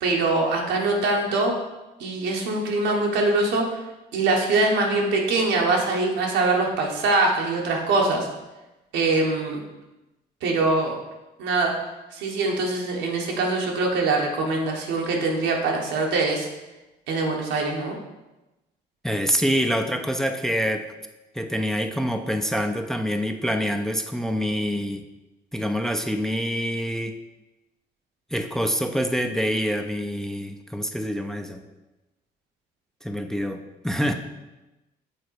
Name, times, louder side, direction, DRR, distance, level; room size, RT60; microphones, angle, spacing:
voice 1, 0.0-1.6 2.0-3.8 4.1-8.3 8.9-9.6 10.4-10.9 11.4-11.7 12.1-16.5 17.1-17.9, right 3 dB, 90° right, 0 dB, 1.3 m, -23 dB
voice 2, 19.0-20.9 21.3-25.1 25.5-27.2 28.3-31.6 33.0-34.1, equal, ahead, 6 dB, 0.5 m, -26 dB
6.5 x 3.9 x 4.7 m, 1.0 s
cardioid pair, 85°, 18 cm